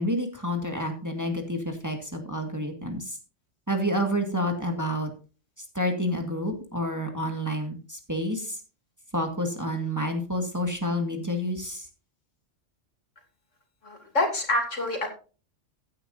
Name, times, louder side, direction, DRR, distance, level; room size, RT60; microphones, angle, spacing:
voice 1, 0.0-3.2 3.7-5.1 5.8-8.6 9.1-11.9, equal, 15° right, 3 dB, 1.8 m, -29 dB
voice 2, 13.8-15.1, left 2 dB, 80° left, 3 dB, 3.2 m, -26 dB
15.5 x 9.5 x 2.6 m, 0.36 s
omnidirectional pair, 1.3 m